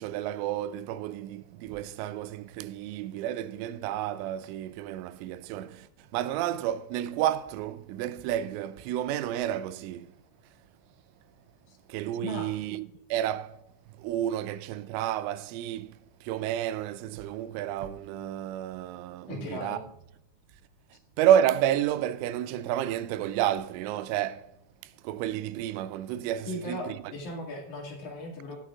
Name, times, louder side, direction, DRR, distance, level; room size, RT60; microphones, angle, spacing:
voice 1, 0.0-10.2 11.9-13.6 13.9-19.8 21.2-24.5 24.8-27.0, right 11 dB, 85° right, 2.9 m, -30 dB
voice 2, 12.2-12.5 19.3-19.8 26.5-28.6, left 1 dB, 50° left, 2.7 m, -37 dB
17.5 x 9.1 x 2.4 m
omnidirectional pair, 5.7 m